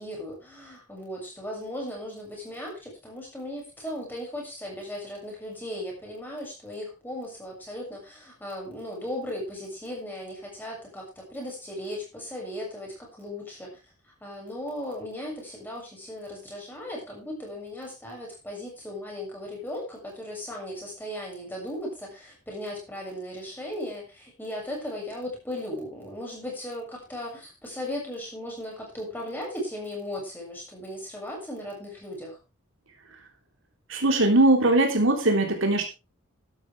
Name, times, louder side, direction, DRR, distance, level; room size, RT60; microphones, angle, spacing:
voice 1, 0.0-13.8 14.2-32.4, left 1 dB, 10° left, -2 dB, 7.0 m, -37 dB
voice 2, 33.9-35.9, right 2 dB, 65° right, 3 dB, 3.5 m, -20 dB
13.0 x 12.0 x 3.5 m, 0.28 s
head